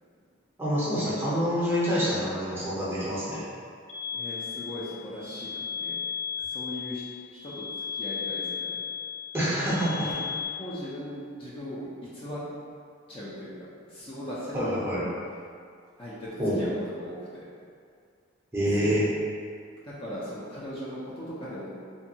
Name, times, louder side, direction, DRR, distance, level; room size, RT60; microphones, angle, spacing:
voice 1, 0.6-3.5 9.3-10.1 14.5-15.0 16.4-16.6 18.5-19.0, equal, 10° right, -9 dB, 0.6 m, -26 dB
Ringing loop, 3.9-10.5, left 7 dB, 80° left, 0.6 m, -35 dB
voice 2, 4.1-6.0 6.4-7.0 7.3-7.6 7.9-8.8 9.6-9.7 10.0-10.1 10.6-12.4 13.1-14.8 16.0-16.3 16.6-17.5 18.7-19.1 19.8-21.7, equal, 25° left, -9 dB, 0.4 m, -39 dB
2.6 x 2.2 x 2.7 m, 2.2 s
head